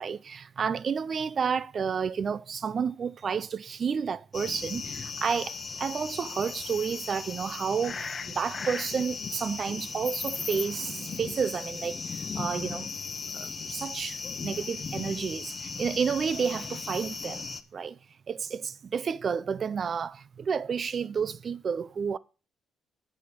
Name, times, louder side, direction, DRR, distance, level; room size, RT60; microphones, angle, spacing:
voice 1, 0.0-12.0 12.3-12.9 13.3-17.4 17.7-18.0 18.3-22.2, right 6 dB, 50° right, 0.5 m, -31 dB
sound 1, 4.3-17.6, left 5 dB, 40° left, 0.9 m, -37 dB
7.7 x 6.2 x 7.0 m
cardioid pair, 90°, 0 cm